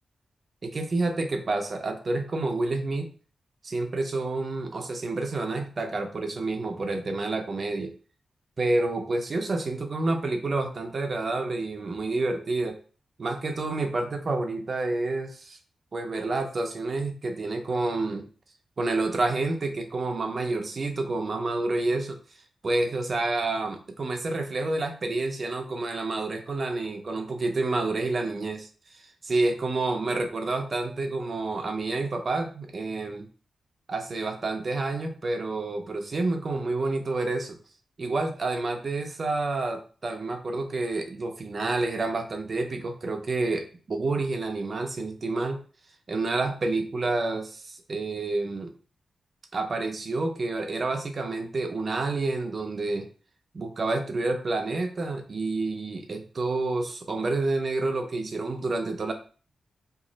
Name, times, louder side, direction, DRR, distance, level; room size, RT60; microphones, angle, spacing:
voice 1, 0.6-3.1 3.6-7.9 8.6-12.8 13.2-15.6 15.9-18.3 18.8-22.2 22.6-33.3 33.9-37.6 38.0-45.6 46.1-48.7 49.5-53.1 53.5-59.1, right 2 dB, 35° right, 5 dB, 0.4 m, -29 dB
2.9 x 2.3 x 3.8 m, 0.38 s
wide cardioid pair, 180°, 0 cm